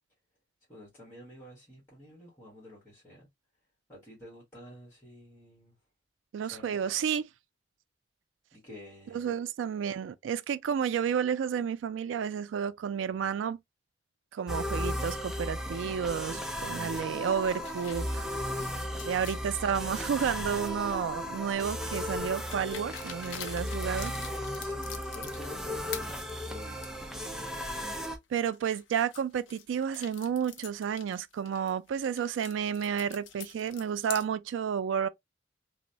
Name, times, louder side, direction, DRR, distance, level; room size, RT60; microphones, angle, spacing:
voice 1, 0.7-3.3 3.9-5.8 6.5-6.9 8.5-9.4 19.1-19.8 24.3-27.0, left 1 dB, 15° left, 1.2 m, -50 dB
voice 2, 6.3-7.3 9.1-13.6 14.3-18.3 19.0-24.2 28.3-35.1, right 7 dB, 85° right, 0.3 m, -31 dB
sound 1, 14.5-28.2, equal, 5° right, 0.4 m, -35 dB
sound 2, 16.3-21.1 21.8-25.6 25.9-27.3 27.8-27.9 28.3-34.2, left 8 dB, 85° left, 0.5 m, -47 dB
3.0 x 2.0 x 2.6 m
head